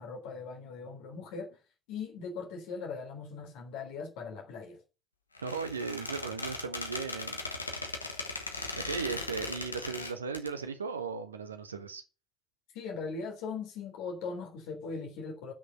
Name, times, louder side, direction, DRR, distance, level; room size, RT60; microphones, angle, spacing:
voice 1, 0.0-1.6 1.9-4.8 12.7-15.5, left 4 dB, 60° left, 3.5 m, -40 dB
Squeak, 5.3-10.5, left 3 dB, 85° left, 1.4 m, -38 dB
voice 2, 5.4-7.4 8.7-12.0, right 5 dB, 80° right, 1.3 m, -36 dB
10.5 x 6.5 x 7.7 m
figure-of-eight pair, 60°, 0 cm